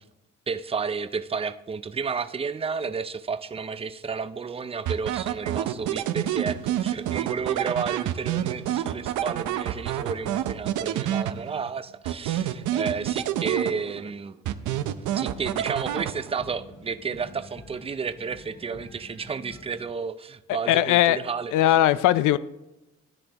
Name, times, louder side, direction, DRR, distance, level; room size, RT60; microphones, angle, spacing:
voice 1, 0.5-14.4 15.1-21.5, right 5 dB, 20° right, 0.5 m, -32 dB
sound 1, 4.9-11.7 12.0-14.1 14.5-16.5, right 12 dB, 85° right, 0.6 m, -28 dB
sound 2, 14.4-19.8, left 2 dB, 55° left, 4.4 m, -47 dB
voice 2, 20.5-21.2 21.5-22.4, left 13 dB, 85° left, 0.5 m, -19 dB
14.0 x 10.0 x 2.9 m
cardioid pair, 90°, 30 cm